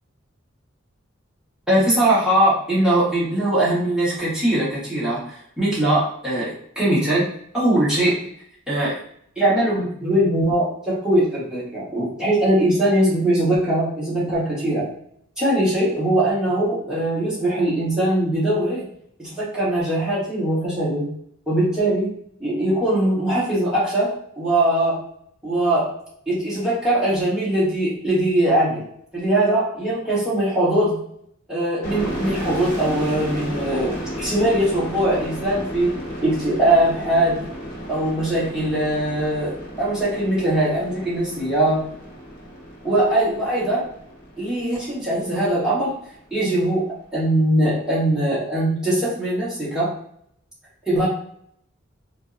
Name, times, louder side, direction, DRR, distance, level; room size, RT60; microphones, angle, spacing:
voice 1, 1.7-5.2 5.6-7.3 7.5-8.1 8.7-9.0 9.4-14.9 15.4-18.9 19.2-21.1 21.5-22.1 22.4-25.0 25.4-25.9 26.3-28.9 29.1-31.0 31.5-37.4 37.9-41.9 42.8-43.9 44.4-45.9 46.3-46.9 47.1-49.9 50.9-51.1, right 1 dB, 5° right, -10 dB, 1.2 m, -21 dB
sound 1, 31.8-45.3, equal, 60° left, 0.9 m, -33 dB
3.4 x 2.1 x 2.5 m, 0.68 s
head